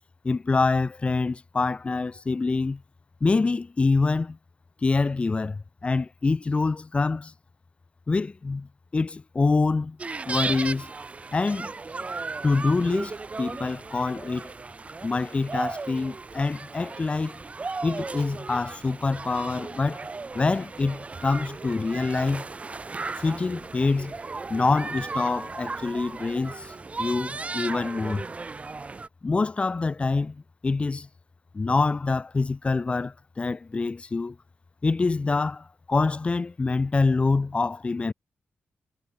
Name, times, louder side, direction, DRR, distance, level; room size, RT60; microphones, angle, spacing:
voice 1, 0.2-2.8 3.2-4.4 4.8-7.3 8.1-10.0 10.3-10.9 11.3-11.7 12.4-14.5 15.0-17.4 17.8-20.1 20.3-22.5 23.2-24.2 24.5-26.7 27.0-28.2 29.2-31.1 31.5-34.4 34.8-38.1, left 3 dB, 25° left, 0.7 m, -25 dB
sound 1, 10.0-29.1, right 3 dB, 30° right, 4.7 m, -36 dB
wide cardioid pair, 160°, 4 cm